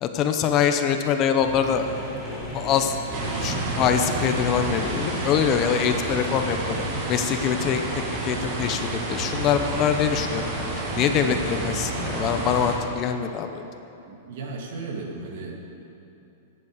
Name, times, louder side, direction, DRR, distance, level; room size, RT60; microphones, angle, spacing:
voice 1, 0.0-1.9 2.3-3.0 3.4-6.7 7.1-7.8 8.2-10.5 10.9-13.6, left 8 dB, 30° left, 7 dB, 0.7 m, -24 dB
sound 1, 1.4-6.9, left 1 dB, 5° left, 3.4 m, -35 dB
sound 2, 2.4-12.2, right 2 dB, 15° right, 2.4 m, -43 dB
sound 3, 3.1-12.7, right 2 dB, 40° right, 2.2 m, -30 dB
voice 2, 14.1-15.5, right 3 dB, 60° right, 0 dB, 2.3 m, -35 dB
11.0 x 8.3 x 8.0 m, 2.8 s
supercardioid pair, 155°, 0 cm